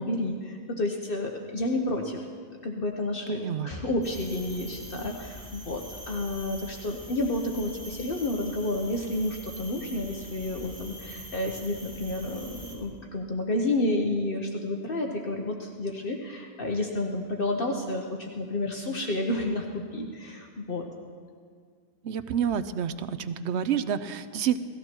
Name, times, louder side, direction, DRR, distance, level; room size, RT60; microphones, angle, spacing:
voice 1, 0.0-2.3 2.6-20.9, left 1 dB, 55° left, 2 dB, 1.2 m, -30 dB
voice 2, 3.3-3.7 22.0-24.6, right 8 dB, 85° right, 13 dB, 1.0 m, -28 dB
sound 1, 4.0-12.7, equal, 20° right, 3.5 m, -44 dB
18.0 x 14.5 x 4.5 m, 2.1 s
omnidirectional pair, 1.1 m